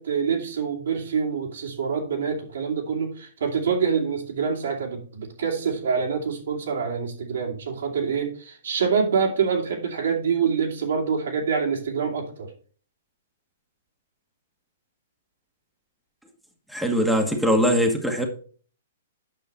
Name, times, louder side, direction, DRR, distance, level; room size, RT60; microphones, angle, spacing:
voice 1, 0.0-12.5, right 6 dB, 75° right, 0 dB, 2.7 m, -26 dB
voice 2, 16.7-18.2, equal, ahead, 2 dB, 1.4 m, -21 dB
8.4 x 6.1 x 4.2 m, 0.41 s
hypercardioid pair, 135°, 0 cm